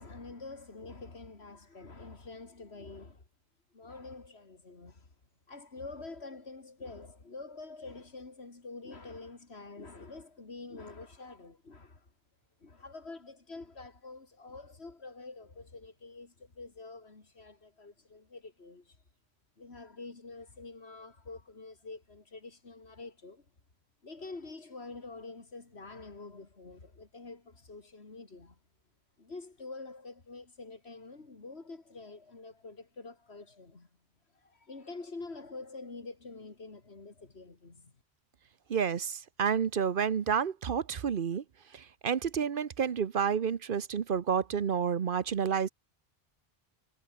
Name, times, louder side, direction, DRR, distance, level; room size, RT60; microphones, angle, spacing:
voice 1, 0.0-3.2 3.7-5.1 5.5-12.1 12.6-19.0 19.6-23.5 24.0-28.6 29.2-33.9 34.3-37.9, left 3 dB, 85° left, 3.0 m, -47 dB
voice 2, 38.7-41.4 41.7-45.7, right 7 dB, 60° right, 1.0 m, -30 dB
omnidirectional pair, 1.1 m